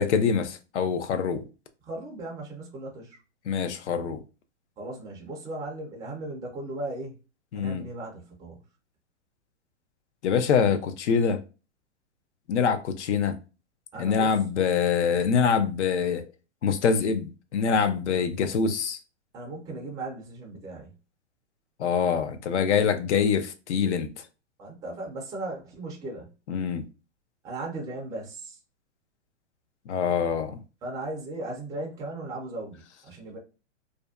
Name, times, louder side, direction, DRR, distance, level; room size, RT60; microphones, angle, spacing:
voice 1, 0.0-1.4 3.5-4.2 7.5-7.8 10.2-11.4 12.5-13.4 14.0-16.2 16.6-19.0 21.8-24.1 26.5-26.8 29.9-30.6, left 6 dB, 70° left, 0.5 m, -25 dB
voice 2, 1.8-3.2 4.8-7.2 7.5-8.6 13.9-14.3 19.3-20.9 24.6-26.3 27.4-28.6 30.8-33.4, right 2 dB, 10° right, 0.4 m, -37 dB
2.5 x 2.1 x 2.3 m
hypercardioid pair, 125°, 36 cm